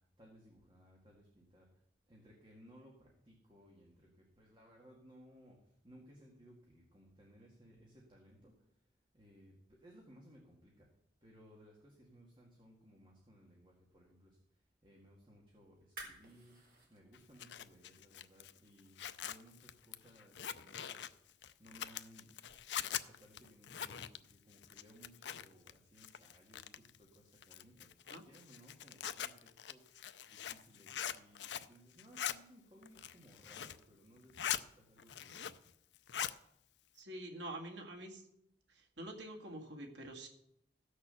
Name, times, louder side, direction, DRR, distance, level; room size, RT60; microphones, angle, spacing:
voice 1, 0.2-1.7 2.1-2.9 3.3-3.9 4.4-5.6 5.8-8.5 9.1-9.5 9.8-10.9 11.2-14.3 14.8-15.7 16.1-16.6 16.9-19.0 19.2-21.0 21.6-22.6 22.9-24.1 24.5-26.7 27.0-27.1 27.5-27.9 28.2-29.3 29.7-29.8 30.3-34.5 34.9-35.5, equal, 25° right, -2 dB, 2.1 m, -61 dB
sound 1, 15.8-22.5, right 2 dB, 50° right, 4.4 m, -59 dB
Zipper (clothing), 17.1-25.7 26.0-27.0 27.4-31.7 32.0-32.4 32.8-33.8 34.2-34.6 35.0-35.7 36.0-36.4, left 10 dB, 80° left, 0.5 m, -43 dB
voice 2, 36.9-38.2 38.7-40.3, right 1 dB, 85° right, 1 dB, 2.0 m, -47 dB
15.5 x 6.6 x 6.9 m, 0.78 s
head